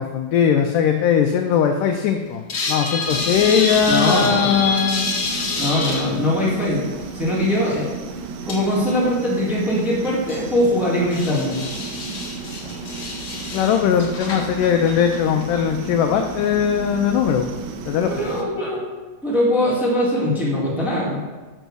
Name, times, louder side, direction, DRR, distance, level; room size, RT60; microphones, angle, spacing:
voice 1, 0.0-2.4 2.7-5.1 13.5-17.5 17.9-18.1, left 8 dB, 80° left, 4 dB, 2.0 m, -19 dB
sound 1, 2.5-6.1 7.7-7.8 8.5-8.6 9.0-9.1 10.1-10.5 11.1-15.4 15.8-15.9, left 3 dB, 60° left, 1.1 m, -27 dB
sound 2, 3.1-18.4, right 4 dB, 80° right, 2.4 m, -33 dB
voice 2, 3.9-4.4 5.5-7.9 8.5-11.6 17.6-17.8 18.2-18.9 19.2-21.2, left 1 dB, ahead, -6 dB, 1.1 m, -21 dB
6.7 x 6.2 x 6.1 m, 1.2 s
omnidirectional pair, 4.0 m